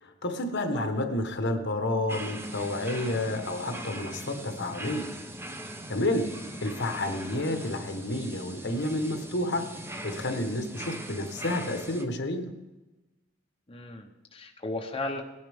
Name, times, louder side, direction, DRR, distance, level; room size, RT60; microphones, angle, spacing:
voice 1, 0.0-5.1 5.9-6.3 6.6-9.7 10.0-12.5, left 1 dB, 60° left, 6 dB, 1.2 m, -30 dB
sound 1, 2.1-12.1, right 1 dB, 10° right, 0.8 m, -40 dB
voice 2, 13.7-15.2, left 2 dB, 25° left, 1 dB, 0.9 m, -35 dB
17.5 x 9.7 x 3.5 m, 1.1 s
head